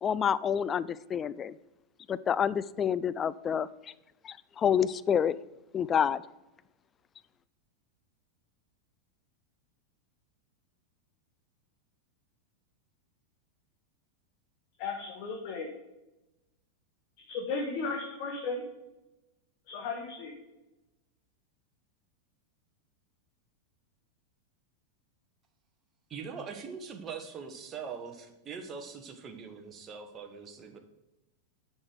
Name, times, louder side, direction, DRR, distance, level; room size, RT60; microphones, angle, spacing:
voice 1, 0.0-1.6 2.1-3.7 4.2-5.4 5.7-6.2, left 8 dB, 25° left, 17 dB, 0.4 m, -28 dB
voice 2, 14.8-15.7 17.2-18.7 19.7-20.3, left 4 dB, 45° left, 1 dB, 1.5 m, -35 dB
voice 3, 26.1-30.8, right 6 dB, 25° right, 6 dB, 1.4 m, -42 dB
10.5 x 6.3 x 5.0 m, 0.98 s
figure-of-eight pair, 90°, 0 cm